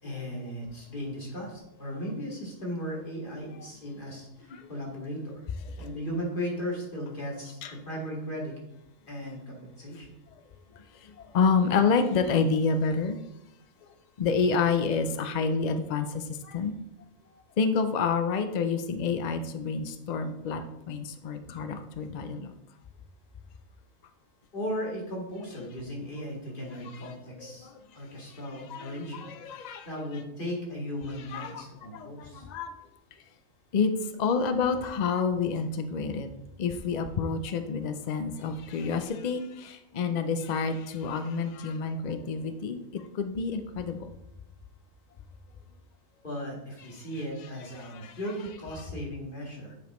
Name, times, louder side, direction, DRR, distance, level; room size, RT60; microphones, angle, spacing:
voice 1, 0.0-5.5 5.8-8.5 9.1-10.1 24.5-29.3 29.8-32.5 46.2-49.7, equal, 40° left, -2 dB, 2.1 m, -36 dB
voice 2, 11.3-13.2 14.2-16.7 17.6-20.6 20.9-22.5 27.4-27.7 28.7-29.9 31.3-31.6 31.9-32.7 33.7-33.9 34.2-36.3 36.6-44.1 48.0-48.1, left 5 dB, 70° left, 8 dB, 0.4 m, -28 dB
9.3 x 5.1 x 3.0 m, 0.86 s
omnidirectional pair, 1.4 m